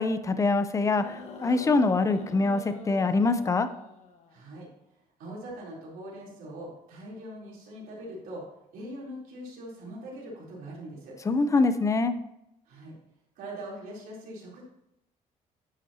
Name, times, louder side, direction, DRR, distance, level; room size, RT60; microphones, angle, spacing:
voice 1, 0.0-3.7 11.2-12.1, left 3 dB, 20° left, 11 dB, 0.6 m, -24 dB
sound 1, 1.0-4.4 5.5-5.6, left 4 dB, 50° left, 1.4 m, -44 dB
voice 2, 4.3-4.7 5.2-8.5 8.7-11.1 12.7-12.9 13.4-14.6, right 1 dB, 85° right, -5 dB, 3.7 m, -42 dB
10.0 x 8.3 x 2.9 m, 0.83 s
cardioid pair, 135°, 14 cm